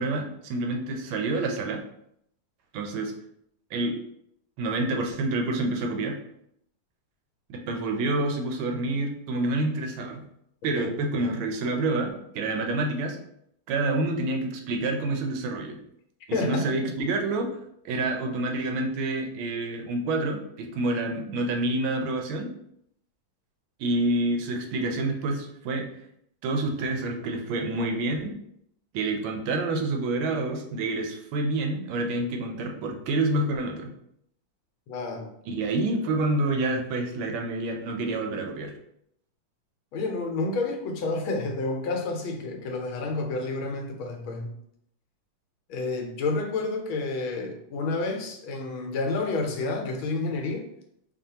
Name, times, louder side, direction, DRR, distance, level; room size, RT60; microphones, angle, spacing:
voice 1, 0.0-1.8 2.7-3.1 3.7-3.9 4.6-6.2 7.5-10.2 10.6-13.2 13.7-15.8 16.3-17.5 17.8-22.5 23.8-25.9 26.4-28.4 28.9-33.9 35.5-38.7, right 2 dB, 80° right, 3 dB, 1.4 m, -28 dB
voice 2, 16.3-16.9 34.9-35.3 39.9-44.5 45.7-50.6, left 3 dB, 85° left, 2 dB, 1.5 m, -29 dB
5.2 x 2.4 x 2.8 m, 0.73 s
omnidirectional pair, 2.2 m